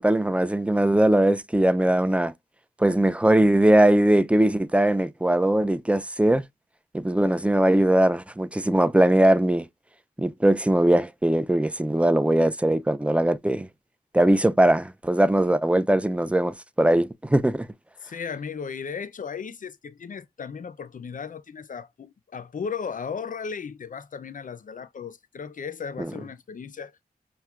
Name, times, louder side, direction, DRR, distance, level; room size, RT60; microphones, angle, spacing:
voice 1, 0.0-2.3 2.8-6.4 6.9-9.7 10.2-13.7 14.1-17.7 26.0-26.1, right 1 dB, 10° right, 0.4 m, -20 dB
voice 2, 18.0-26.9, left 6 dB, 55° left, 0.4 m, -36 dB
5.5 x 2.1 x 2.4 m
cardioid pair, 45°, 16 cm